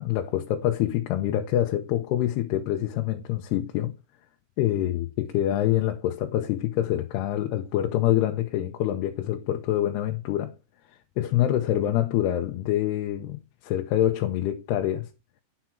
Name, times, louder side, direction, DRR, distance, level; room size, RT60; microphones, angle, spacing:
voice 1, 0.0-3.9 4.6-10.5 11.2-15.1, left 12 dB, 90° left, 3.0 m, -26 dB
9.3 x 5.9 x 5.9 m
omnidirectional pair, 4.5 m